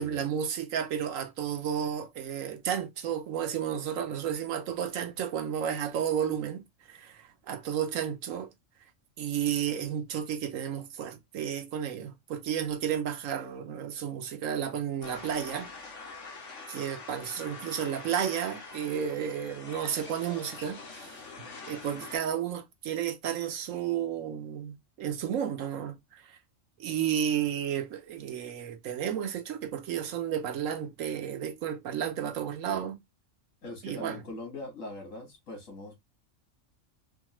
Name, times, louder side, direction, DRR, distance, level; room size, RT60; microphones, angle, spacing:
voice 1, 0.0-6.6 6.9-8.5 9.2-15.7 16.7-21.2 21.6-26.2 26.8-33.0 33.8-34.2, right 9 dB, 90° right, 1.2 m, -32 dB
sound 1, 15.0-22.2, left 4 dB, 70° left, 1.4 m, -45 dB
voice 2, 33.6-36.0, left 2 dB, 85° left, 2.1 m, -42 dB
4.4 x 2.4 x 3.0 m
omnidirectional pair, 1.3 m